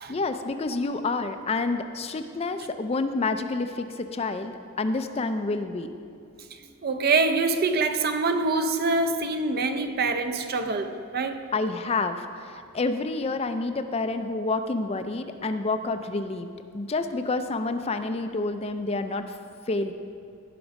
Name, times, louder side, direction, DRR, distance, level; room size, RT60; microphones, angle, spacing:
voice 1, 0.1-6.0 11.5-19.4 19.7-19.9, left 3 dB, 30° left, 0.4 m, -28 dB
voice 2, 6.6-11.5, right 3 dB, 45° right, 0.6 m, -25 dB
16.5 x 6.0 x 5.2 m
head